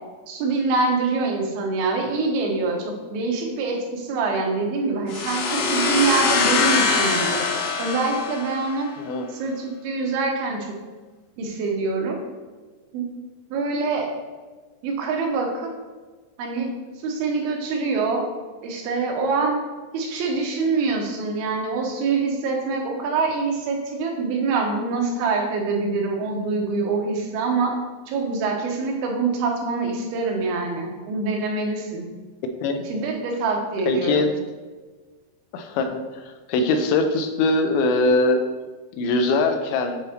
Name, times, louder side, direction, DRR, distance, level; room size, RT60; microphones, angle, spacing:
voice 1, 0.3-7.4 7.8-8.9 9.3-10.7 11.4-12.2 12.9-13.1 13.5-14.1 14.8-15.7 16.4-16.7 17.0-18.3 18.6-19.6 19.9-27.7 28.1-32.1 32.9-34.3, right 4 dB, 80° right, 1 dB, 2.9 m, -25 dB
sound 1, 5.1-8.8, left 4 dB, 70° left, 1.9 m, -23 dB
voice 2, 33.9-34.3 35.5-36.2 36.5-38.4 39.0-40.0, left 2 dB, 85° left, 6 dB, 2.6 m, -21 dB
8.0 x 4.0 x 4.3 m, 1.3 s
omnidirectional pair, 4.3 m